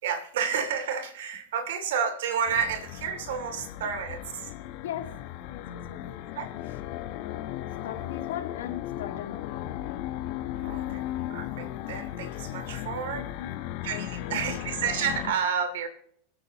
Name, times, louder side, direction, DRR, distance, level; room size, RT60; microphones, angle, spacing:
voice 1, 0.0-4.5 6.3-6.5 10.6-11.0 11.3-13.6 13.8-15.9, right 7 dB, 85° right, 8 dB, 2.7 m, -30 dB
sound 1, 2.5-15.3, left 13 dB, 60° left, 1.1 m, -36 dB
voice 2, 5.5-6.4 7.8-9.8 13.1-13.5 13.9-14.5, left 10 dB, 90° left, 2 dB, 2.1 m, -39 dB
26.0 x 9.0 x 3.0 m, 0.65 s
supercardioid pair, 125°, 0 cm